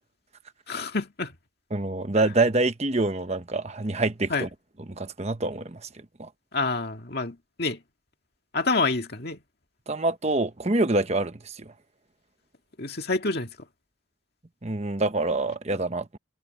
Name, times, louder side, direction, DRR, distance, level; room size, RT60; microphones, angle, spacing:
voice 1, 0.7-1.4 4.3-4.5 6.5-7.8 8.5-9.4 12.8-13.5, left 3 dB, 50° left, 2.1 m, -27 dB
voice 2, 1.7-4.5 5.0-5.9 6.2-6.3 9.9-11.7 14.6-16.2, right 2 dB, 30° right, 1.0 m, -26 dB
head